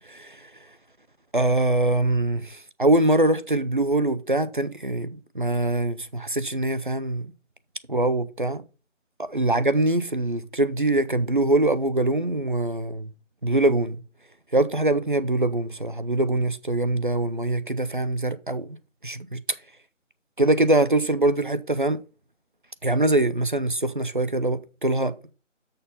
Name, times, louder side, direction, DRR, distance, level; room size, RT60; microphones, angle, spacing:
voice 1, 0.1-0.4 1.3-7.3 7.9-8.6 9.2-13.1 13.4-14.0 14.5-18.7 19.0-19.4 20.4-22.0 22.8-25.1, right 2 dB, 40° right, 0.4 m, -23 dB
6.6 x 5.3 x 5.6 m
figure-of-eight pair, 170°, 38 cm